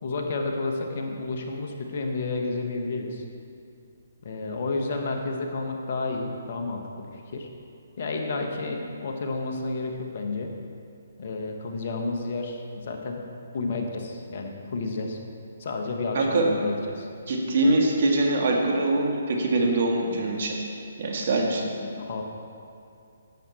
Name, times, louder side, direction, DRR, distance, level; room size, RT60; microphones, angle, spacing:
voice 1, 0.0-3.2 4.2-7.5 8.0-10.5 11.2-13.2 13.5-15.2 15.6-17.1 22.0-22.2, left 3 dB, 55° left, 3 dB, 1.2 m, -31 dB
voice 2, 16.1-16.5 17.3-20.6 21.0-21.7, right 2 dB, 55° right, 1 dB, 1.6 m, -23 dB
11.0 x 7.5 x 4.2 m, 2.5 s
figure-of-eight pair, 140°, 0 cm